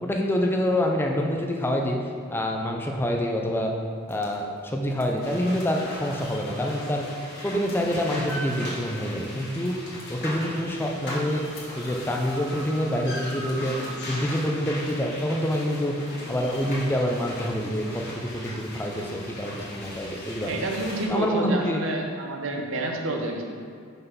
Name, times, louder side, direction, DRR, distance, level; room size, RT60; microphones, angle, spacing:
voice 1, 0.0-3.7 4.1-7.0 7.4-9.8 10.1-11.5 11.8-13.8 14.1-16.0 16.3-20.5 21.1-21.8, equal, 10° left, 1 dB, 0.5 m, -26 dB
sound 1, 3.8-14.3, right 1 dB, 90° left, 1.5 m, -47 dB
sound 2, 5.2-21.1, left 1 dB, 55° left, 1.6 m, -38 dB
voice 2, 20.5-23.4, right 2 dB, 65° right, 2 dB, 0.8 m, -29 dB
5.4 x 4.0 x 5.6 m, 2.3 s
head